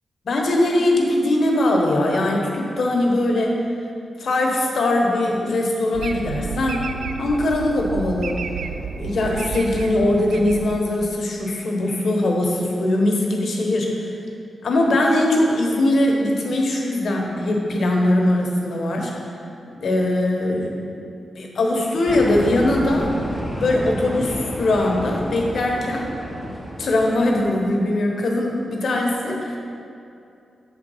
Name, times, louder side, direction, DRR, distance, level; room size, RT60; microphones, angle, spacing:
voice 1, 0.3-3.6 4.2-6.8 7.2-8.4 9.0-14.1 14.6-19.1 19.8-20.9 21.4-23.1 23.6-26.1 26.4-26.5 26.8-29.6, left 1 dB, 70° left, 0 dB, 1.1 m, -21 dB
sound 1, 5.9-11.3, right 5 dB, 80° right, 0.4 m, -31 dB
sound 2, 22.1-27.6, equal, 5° left, 1.1 m, -31 dB
7.6 x 4.1 x 5.5 m, 2.6 s
cardioid pair, 60°, 0 cm